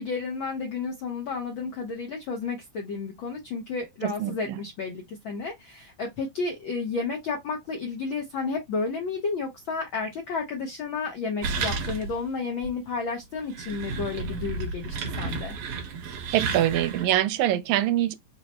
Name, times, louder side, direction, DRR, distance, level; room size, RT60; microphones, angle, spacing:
voice 1, 0.0-15.5, left 4 dB, 75° left, 1.1 m, -32 dB
voice 2, 4.0-4.6 16.3-18.1, right 13 dB, 85° right, 1.9 m, -24 dB
sound 1, 11.4-12.3 12.6-12.7 13.3-17.1, right 4 dB, 65° right, 1.6 m, -32 dB
4.6 x 2.0 x 4.2 m
omnidirectional pair, 3.3 m